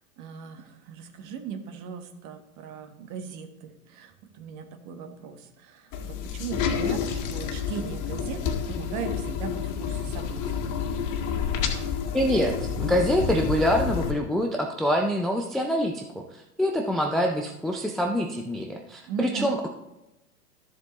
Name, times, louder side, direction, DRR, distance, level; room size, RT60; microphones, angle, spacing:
voice 1, 0.2-10.4 19.1-19.5, right 7 dB, 40° right, 7 dB, 1.4 m, -38 dB
sound 1, 5.9-14.1, left 6 dB, 40° left, 1.9 m, -29 dB
voice 2, 12.1-16.2 16.6-19.7, equal, ahead, 2 dB, 0.4 m, -25 dB
12.5 x 7.4 x 3.1 m, 0.93 s
hypercardioid pair, 105°, 45 cm